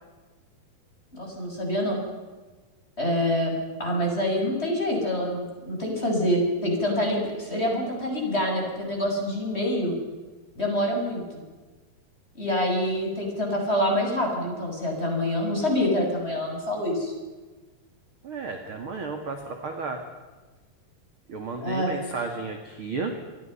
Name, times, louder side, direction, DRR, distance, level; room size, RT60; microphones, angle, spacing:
voice 1, 1.1-2.0 3.0-3.5 3.8-9.9 10.6-11.2 12.3-17.1 21.6-21.9, left 1 dB, 15° left, 0 dB, 7.6 m, -26 dB
voice 2, 18.2-20.0 21.3-23.1, right 4 dB, 40° right, 4 dB, 2.6 m, -33 dB
29.0 x 24.0 x 5.8 m, 1.3 s
omnidirectional pair, 4.5 m